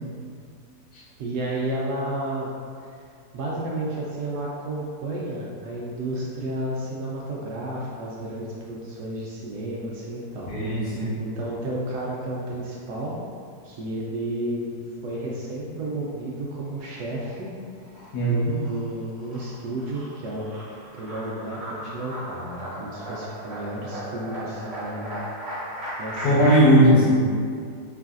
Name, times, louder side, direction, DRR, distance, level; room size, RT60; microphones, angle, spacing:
voice 1, 1.2-2.5 3.3-10.5 10.8-13.1 13.6-14.7 15.0-17.5 18.2-20.5 20.9-25.2 26.0-26.4, right 1 dB, 75° right, -5 dB, 1.1 m, -32 dB
voice 2, 10.5-11.1 18.1-18.5 26.2-27.2, equal, 75° left, -8 dB, 1.5 m, -18 dB
sound 1, 16.6-17.5 17.8-26.6, right 1 dB, 45° right, 1.0 m, -36 dB
4.7 x 3.3 x 2.4 m, 2.2 s
omnidirectional pair, 1.8 m